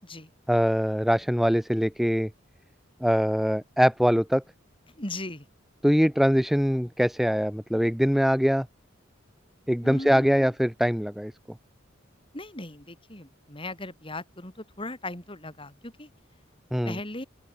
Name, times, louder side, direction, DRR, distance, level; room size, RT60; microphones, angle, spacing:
voice 1, 0.5-2.3 3.0-4.4 5.8-8.7 9.7-11.3 16.7-17.0, equal, ahead, 0.7 m, -23 dB
voice 2, 5.0-5.4 9.8-10.5 12.3-16.1 16.8-17.2, left 2 dB, 25° left, 5.9 m, -38 dB
open air
head